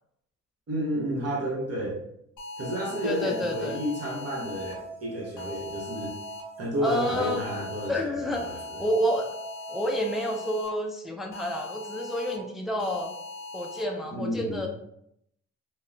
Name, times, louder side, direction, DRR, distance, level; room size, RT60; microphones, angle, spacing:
voice 1, 0.7-2.0 2.6-6.1 6.6-8.8 14.1-14.7, equal, 55° right, -3 dB, 1.0 m, -31 dB
sound 1, 2.4-4.7 5.4-6.4 6.8-7.9 8.3-10.7 11.3-12.4 12.8-13.8, left 3 dB, 85° left, 0.7 m, -40 dB
sound 2, 2.6-10.6, right 3 dB, 20° right, 0.9 m, -44 dB
voice 2, 3.0-3.7 6.8-7.5 7.9-9.3 9.7-13.1 13.5-14.7, equal, ahead, 2 dB, 0.3 m, -29 dB
2.8 x 2.1 x 2.5 m, 0.74 s
cardioid pair, 90°, 30 cm